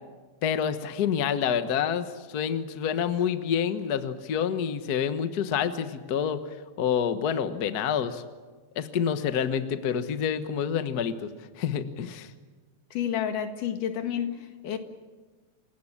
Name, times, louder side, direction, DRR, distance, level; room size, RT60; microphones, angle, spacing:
voice 1, 0.4-6.4 6.8-8.2 8.7-11.3 11.6-12.3, left 8 dB, 55° left, 10 dB, 1.0 m, -28 dB
voice 2, 12.9-14.8, left 9 dB, 90° left, 7 dB, 3.4 m, -30 dB
28.5 x 17.0 x 8.7 m, 1.4 s
omnidirectional pair, 3.6 m